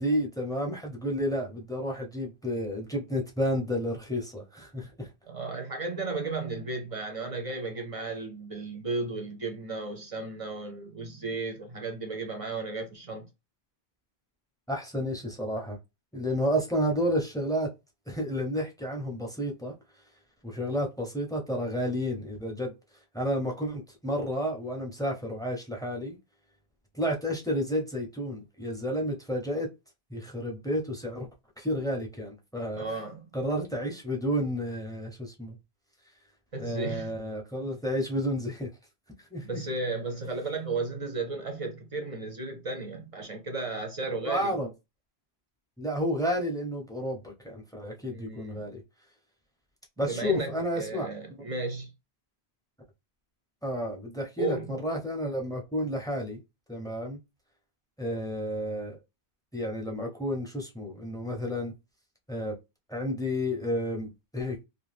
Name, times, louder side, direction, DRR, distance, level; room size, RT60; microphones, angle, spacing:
voice 1, 0.0-5.1 14.7-15.8 16.1-17.7 18.1-19.7 20.4-22.7 23.1-26.2 26.9-29.7 30.1-31.3 31.6-32.8 33.3-35.6 36.6-38.7 39.3-39.6 44.2-44.7 45.8-48.8 50.0-51.1 53.6-56.4 56.7-57.2 58.0-59.0 59.5-61.7 62.3-62.6 62.9-64.6, equal, 5° left, 0.6 m, -31 dB
voice 2, 5.3-13.3 32.8-33.3 36.5-37.1 39.4-44.6 48.1-48.7 50.0-51.9 54.4-54.8, right 3 dB, 45° right, 0.5 m, -34 dB
2.5 x 2.2 x 3.2 m
omnidirectional pair, 1.1 m